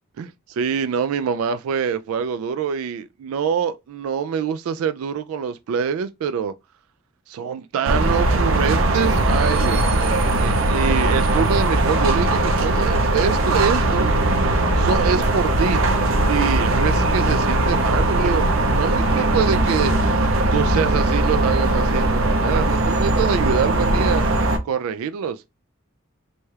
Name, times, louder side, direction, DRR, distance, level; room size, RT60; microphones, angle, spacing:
voice 1, 0.2-6.5 7.3-14.1 14.8-15.8 16.3-19.9 20.5-24.2 24.6-25.4, right 7 dB, 85° right, 0.3 m, -25 dB
sound 1, 7.9-24.6, right 2 dB, 70° right, 0.7 m, -19 dB
4.1 x 2.3 x 3.2 m
head